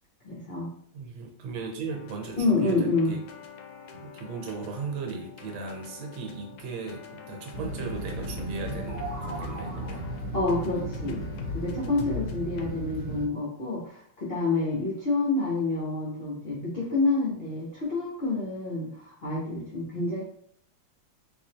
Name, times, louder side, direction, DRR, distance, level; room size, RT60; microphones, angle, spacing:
voice 1, 0.2-0.7 2.4-3.1 10.3-11.2 11.5-20.2, left 3 dB, 50° left, -7 dB, 0.7 m, -28 dB
voice 2, 0.9-3.2 3.9-10.0, right 4 dB, 75° right, 2 dB, 1.5 m, -37 dB
sound 1, 1.9-12.7, left 5 dB, 80° left, 1.3 m, -46 dB
sound 2, 7.5-13.3, right 1 dB, 20° left, 1.1 m, -35 dB
sound 3, 8.5-10.3, right 2 dB, 25° right, 1.4 m, -40 dB
3.9 x 2.7 x 2.8 m, 0.64 s
omnidirectional pair, 2.2 m